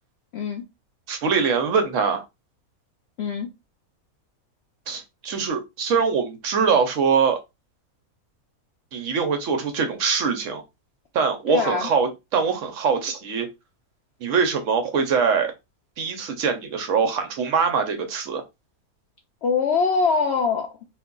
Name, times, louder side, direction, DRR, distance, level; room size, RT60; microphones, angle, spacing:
voice 1, 0.3-0.6 3.2-3.5 11.5-11.9 19.4-20.8, left 5 dB, 70° left, 0.6 m, -23 dB
voice 2, 1.1-2.2 4.9-7.4 8.9-10.6 11.1-13.5 14.2-15.5 16.0-18.4, right 5 dB, 65° right, 0.9 m, -23 dB
2.6 x 2.2 x 3.7 m
omnidirectional pair, 1.5 m